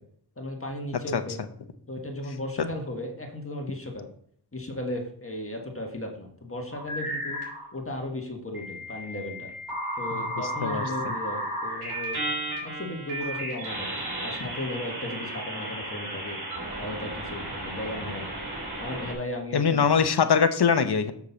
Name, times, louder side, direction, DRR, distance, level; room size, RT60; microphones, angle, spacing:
voice 1, 0.4-1.4 1.9-4.1 4.5-7.4 7.7-9.5 10.0-12.2 12.6-13.9 14.2-16.4 16.8-18.4 18.8-19.9, left 1 dB, 30° left, 1 dB, 1.6 m, -35 dB
sound 1, 6.7-7.7 8.5-19.1, right 1 dB, 65° right, 3.5 m, -34 dB
voice 2, 19.5-21.1, left 6 dB, 70° left, 9 dB, 0.9 m, -22 dB
7.3 x 6.6 x 4.1 m, 0.62 s
wide cardioid pair, 60°, 41 cm